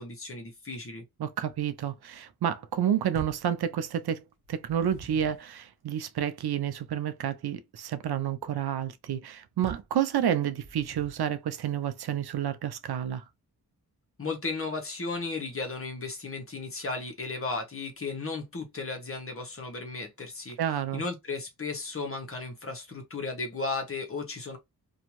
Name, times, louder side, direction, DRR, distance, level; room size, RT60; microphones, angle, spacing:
voice 1, 0.0-1.0 14.2-20.6 20.9-24.6, left 3 dB, 35° left, 0.8 m, -35 dB
voice 2, 1.2-13.2 20.6-21.0, right 9 dB, 80° right, 0.5 m, -30 dB
sound 1, 3.1-3.5 4.4-5.5 9.6-10.0 10.6-11.3, right 5 dB, 55° right, 0.8 m, -44 dB
2.6 x 2.2 x 3.0 m
wide cardioid pair, 105°, 38 cm